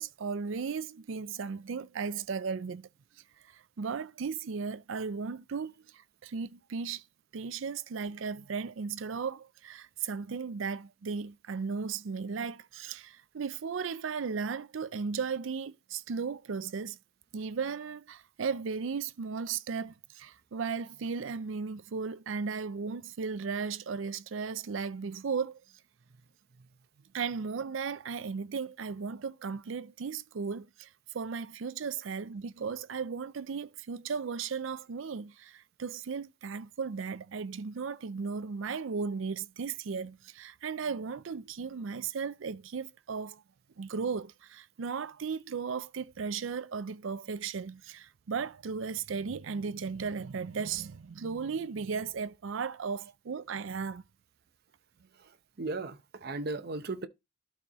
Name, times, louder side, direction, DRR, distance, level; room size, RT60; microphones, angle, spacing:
voice 1, 0.0-2.9 3.5-7.0 7.3-17.0 17.3-25.6 27.1-43.4 43.8-54.0, right 5 dB, 75° right, 0.5 m, -36 dB
voice 2, 55.1-57.1, right 2 dB, 55° right, 0.8 m, -37 dB
12.0 x 4.2 x 3.0 m
head